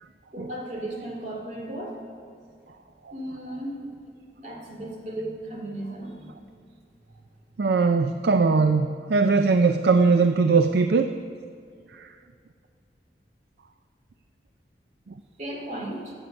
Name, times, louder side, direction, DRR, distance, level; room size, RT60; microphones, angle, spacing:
voice 1, 0.3-2.0 3.1-3.9 4.4-6.4 15.4-16.1, right 1 dB, 45° right, -1 dB, 2.5 m, -35 dB
voice 2, 7.6-11.1 12.0-12.1, right 4 dB, 60° right, 8 dB, 0.4 m, -20 dB
14.5 x 8.0 x 5.2 m, 2.3 s
head